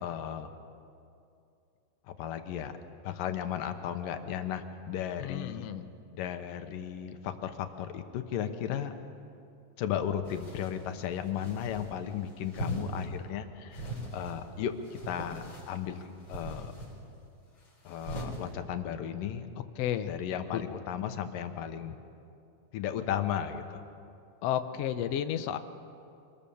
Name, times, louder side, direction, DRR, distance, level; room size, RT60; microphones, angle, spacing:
voice 1, 0.0-0.5 2.1-2.7 3.0-5.7 6.1-8.9 9.8-16.0 16.3-16.7 17.8-19.5 20.0-22.0 22.7-23.8, left 9 dB, 90° left, 7 dB, 2.8 m, -35 dB
voice 2, 5.2-5.8 19.8-20.1 20.5-20.6 24.4-25.6, left 10 dB, 70° left, 9 dB, 1.6 m, -32 dB
sound 1, 10.2-10.8 11.3-11.9 12.5-13.1 13.7-14.4 14.8-15.7 16.3-16.9 17.9-18.4, equal, 35° left, 5.1 m, -40 dB
25.5 x 20.0 x 7.1 m, 2.6 s
omnidirectional pair, 3.8 m